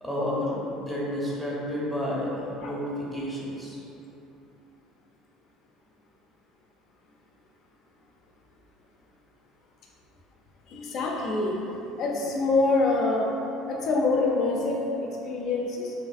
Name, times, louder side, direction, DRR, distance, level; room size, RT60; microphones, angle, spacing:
voice 1, 0.0-3.8, left 1 dB, ahead, -6 dB, 0.6 m, -31 dB
voice 2, 10.7-11.6 12.0-13.3 13.7-15.9, left 3 dB, 55° left, -1 dB, 0.4 m, -25 dB
2.5 x 2.4 x 2.5 m, 2.9 s
supercardioid pair, 110°, 0 cm